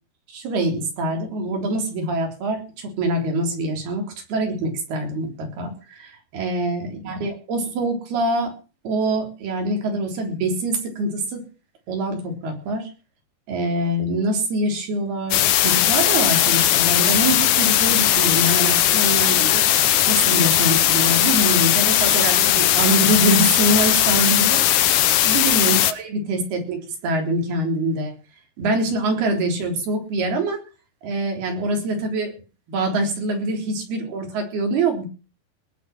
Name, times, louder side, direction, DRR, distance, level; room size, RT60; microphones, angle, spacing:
voice 1, 0.3-8.5 8.8-11.4 11.9-12.9 13.5-19.7 20.1-28.1 28.6-30.6 31.0-32.3 32.7-35.0, right 1 dB, 65° right, 3 dB, 5.7 m, -24 dB
sound 1, 15.3-25.9, left 12 dB, 75° left, 1.8 m, -18 dB
19.5 x 8.7 x 6.1 m, 0.36 s
omnidirectional pair, 5.0 m